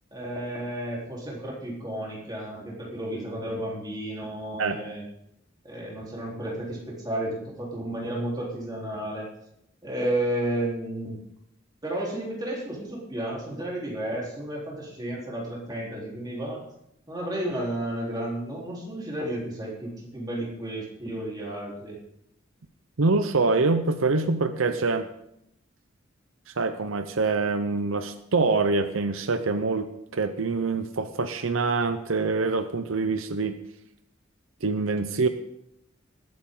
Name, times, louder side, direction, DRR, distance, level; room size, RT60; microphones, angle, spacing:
voice 1, 0.1-5.0 5.6-9.3 9.8-11.2 11.8-16.6 17.1-22.0, right 1 dB, 20° right, -4 dB, 3.9 m, -32 dB
voice 2, 23.0-25.1 26.5-33.5 34.6-35.3, right 3 dB, 85° right, 10 dB, 0.8 m, -25 dB
21.0 x 8.8 x 3.9 m, 0.78 s
head